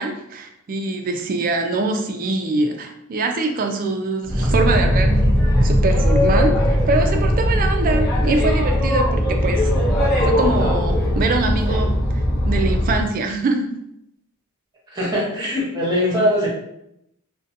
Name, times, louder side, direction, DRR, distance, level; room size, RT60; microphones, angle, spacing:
voice 1, 0.0-5.3 5.6-9.7 10.2-13.8, right 3 dB, 40° right, 4 dB, 0.3 m, -23 dB
Boat Water vehicle, 4.2-13.1, equal, 45° left, 0.7 m, -19 dB
voice 2, 14.9-16.5, equal, 20° right, -5 dB, 0.8 m, -21 dB
2.6 x 2.1 x 2.6 m, 0.79 s
head